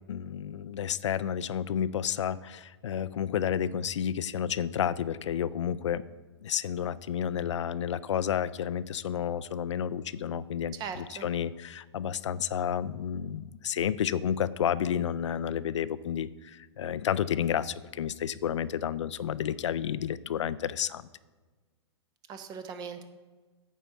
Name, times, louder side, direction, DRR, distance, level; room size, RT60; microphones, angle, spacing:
voice 1, 0.1-6.0 6.4-21.0, left 9 dB, 85° left, 16 dB, 0.4 m, -31 dB
voice 2, 10.7-11.3 22.3-23.0, right 6 dB, 25° right, 9 dB, 0.8 m, -39 dB
9.2 x 4.6 x 6.4 m, 1.3 s
hypercardioid pair, 130°, 15 cm